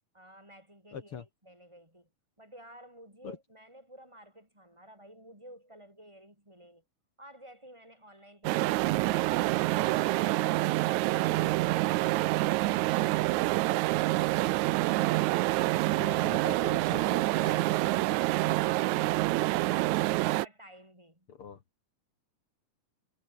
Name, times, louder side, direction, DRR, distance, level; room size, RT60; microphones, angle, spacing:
voice 1, 0.1-2.1 2.4-6.8 7.2-9.1 20.4-21.4, right 1 dB, 10° right, 7.2 m, -53 dB
voice 2, 0.9-1.2 3.2-3.4 15.9-17.6 21.3-21.6, left 6 dB, 50° left, 2.1 m, -42 dB
sound 1, 8.4-20.5, right 19 dB, 80° right, 1.7 m, -27 dB
omnidirectional pair, 3.9 m